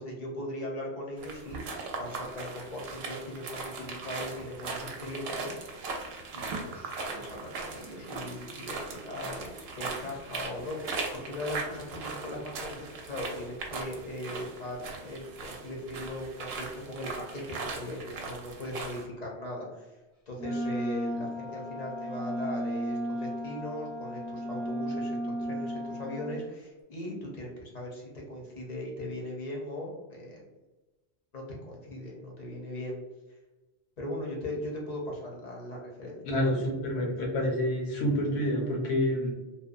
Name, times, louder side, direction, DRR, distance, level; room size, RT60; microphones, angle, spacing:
voice 1, 0.0-5.8 6.3-17.4 17.7-20.0 20.3-30.4 31.3-33.0 34.0-36.6 37.0-37.1, left 1 dB, 45° left, -2 dB, 0.7 m, -39 dB
sound 1, 1.2-19.0, right 3 dB, 70° right, 0.8 m, -39 dB
Wind instrument woodwind instrument, 20.4-26.4, equal, 35° right, 0.8 m, -34 dB
voice 2, 36.2-39.3, equal, 80° left, 0 dB, 1.0 m, -28 dB
2.7 x 2.1 x 2.4 m, 1.1 s
omnidirectional pair, 1.1 m